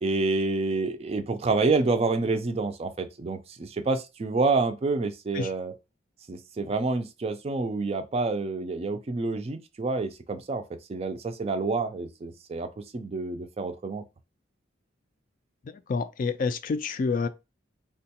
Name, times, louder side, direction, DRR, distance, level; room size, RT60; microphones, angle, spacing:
voice 1, 0.0-5.7 6.3-10.6 10.9-14.0, right 3 dB, 35° right, 0.4 m, -28 dB
voice 2, 15.9-17.3, left 4 dB, 45° left, 0.3 m, -28 dB
3.7 x 2.2 x 2.8 m
head